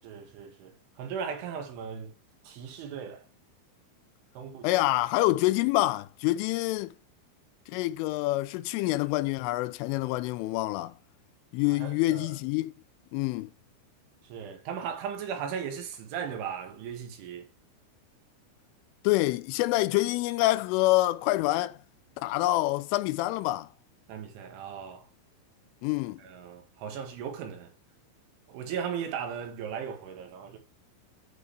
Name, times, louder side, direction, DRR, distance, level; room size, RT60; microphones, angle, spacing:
voice 1, 0.0-2.1 2.5-3.2 4.4-4.7 11.7-12.3 14.2-17.5 24.1-25.1 26.2-27.7 28.5-30.6, right 7 dB, 75° right, 4.2 m, -37 dB
voice 2, 4.6-6.9 7.7-10.9 11.5-12.7 13.1-13.5 19.0-21.8 22.2-23.7 25.8-26.2, left 18 dB, 90° left, 3.2 m, -26 dB
13.5 x 4.9 x 3.4 m
omnidirectional pair, 5.6 m